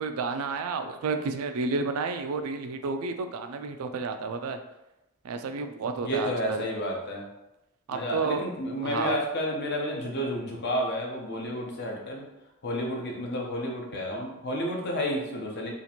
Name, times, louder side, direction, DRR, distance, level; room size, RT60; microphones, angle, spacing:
voice 1, 0.0-4.6 5.2-6.7 7.9-8.5 8.8-9.2, right 4 dB, 85° right, 7 dB, 0.4 m, -31 dB
voice 2, 6.0-7.3 7.9-12.3 12.6-15.7, equal, 55° left, 0 dB, 0.7 m, -31 dB
2.9 x 2.5 x 4.2 m, 0.93 s
head